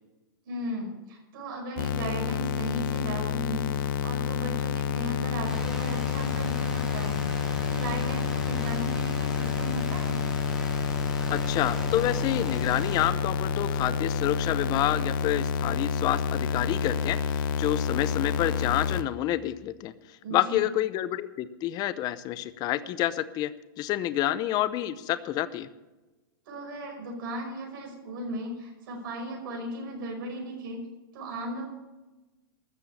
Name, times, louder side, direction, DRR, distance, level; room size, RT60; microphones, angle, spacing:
voice 1, 0.5-10.2 20.2-20.6 26.5-30.8 31.1-31.6, right 1 dB, 70° right, 1 dB, 5.6 m, -36 dB
sound 1, 1.8-19.0, left 7 dB, 65° left, 0.9 m, -29 dB
sound 2, 5.4-13.1, right 1 dB, 5° right, 2.6 m, -40 dB
voice 2, 11.3-19.9 20.3-23.5 23.8-25.7, left 13 dB, 35° left, 14 dB, 0.7 m, -28 dB
14.0 x 6.8 x 8.6 m, 1.1 s
hypercardioid pair, 135°, 12 cm